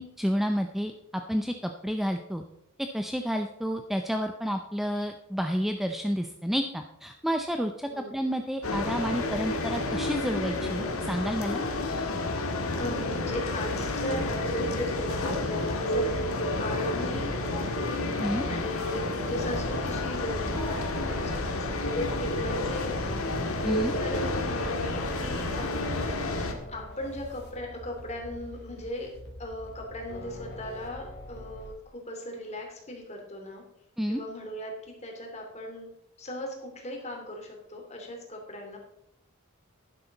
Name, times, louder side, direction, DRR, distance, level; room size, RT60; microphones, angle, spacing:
voice 1, 0.0-2.4 2.8-11.6 18.2-18.5 23.6-23.9 34.0-34.2, equal, ahead, 5 dB, 0.5 m, -30 dB
sound 1, 8.6-26.5, left 2 dB, 80° left, 1.7 m, -30 dB
voice 2, 12.8-16.1 16.6-23.6 24.0-26.0 26.7-29.1 29.4-33.6 34.1-35.9 36.2-38.8, left 1 dB, 30° left, 1 dB, 2.8 m, -38 dB
sound 2, 19.3-31.7, equal, 50° left, 2.7 m, -43 dB
11.5 x 10.5 x 4.0 m, 0.81 s
head